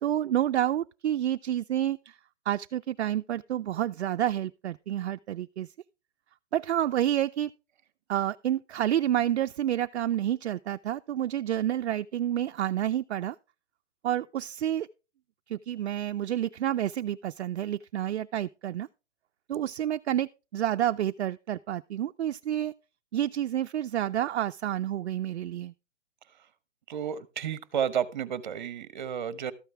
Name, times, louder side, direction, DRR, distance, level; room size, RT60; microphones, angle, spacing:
voice 1, 0.0-2.2 2.5-5.7 6.5-7.5 8.1-13.4 14.0-14.9 15.5-18.9 19.5-22.7 23.1-25.7, right 11 dB, 65° right, 0.5 m, -29 dB
voice 2, 26.9-29.5, right 8 dB, 40° right, 1.0 m, -31 dB
13.0 x 9.1 x 3.3 m
hypercardioid pair, 170°, 36 cm